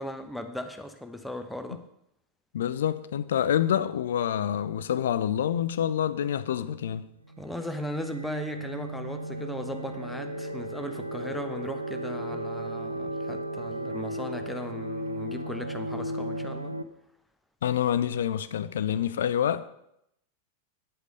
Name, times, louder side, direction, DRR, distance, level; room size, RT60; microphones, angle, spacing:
voice 1, 0.0-1.8 7.4-16.7, left 1 dB, 5° left, 0.9 m, -37 dB
voice 2, 2.5-7.1 17.6-19.7, left 9 dB, 60° left, 0.5 m, -27 dB
sound 1, 7.3-16.8, right 1 dB, 85° right, 0.6 m, -35 dB
9.7 x 8.2 x 5.2 m
figure-of-eight pair, 90°, 0 cm